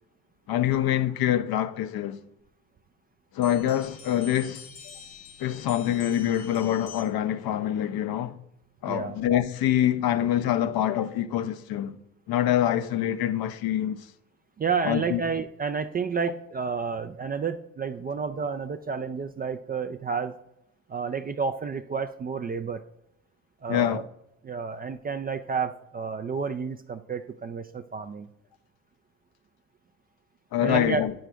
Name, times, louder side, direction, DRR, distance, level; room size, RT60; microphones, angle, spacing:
voice 1, 0.5-2.2 3.3-4.9 5.4-8.4 8.8-12.0 12.3-14.1 14.8-15.2 23.7-24.0 30.5-31.1, left 11 dB, 55° left, 0.7 m, -25 dB
sound 1, 3.4-7.3, left 6 dB, 75° left, 1.4 m, -46 dB
voice 2, 8.9-9.2 14.6-20.4 20.9-22.8 23.6-24.0 24.4-28.3 30.6-31.0, right 5 dB, 25° right, 0.3 m, -30 dB
8.7 x 6.3 x 2.3 m
supercardioid pair, 70°, 43 cm